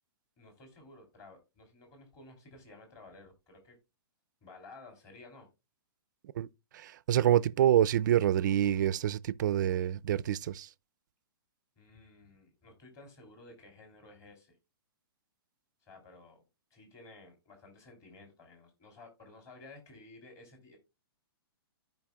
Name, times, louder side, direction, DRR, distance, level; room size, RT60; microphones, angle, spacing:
voice 1, 0.4-3.8 4.4-5.5 11.8-14.6 15.8-16.4 16.7-20.8, left 2 dB, 25° left, 2.9 m, -54 dB
voice 2, 6.7-10.7, right 11 dB, 50° right, 0.4 m, -27 dB
14.5 x 5.2 x 2.3 m
hypercardioid pair, 160°, 13 cm